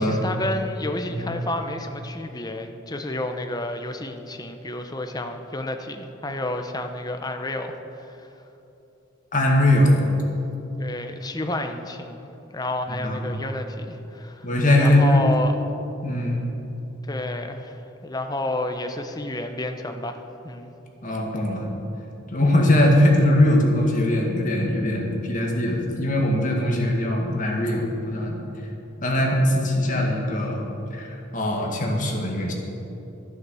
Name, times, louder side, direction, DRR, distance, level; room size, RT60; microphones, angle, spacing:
voice 1, 0.0-8.3 10.8-14.5 14.8-15.6 17.0-20.7, left 1 dB, 20° left, 6 dB, 0.7 m, -30 dB
voice 2, 9.3-10.0 12.9-13.4 14.4-15.2 16.0-16.4 21.0-21.7 22.3-28.4 29.0-30.6 30.9-32.5, left 1 dB, 40° left, 0 dB, 1.9 m, -21 dB
12.0 x 9.6 x 6.9 m, 3.0 s
head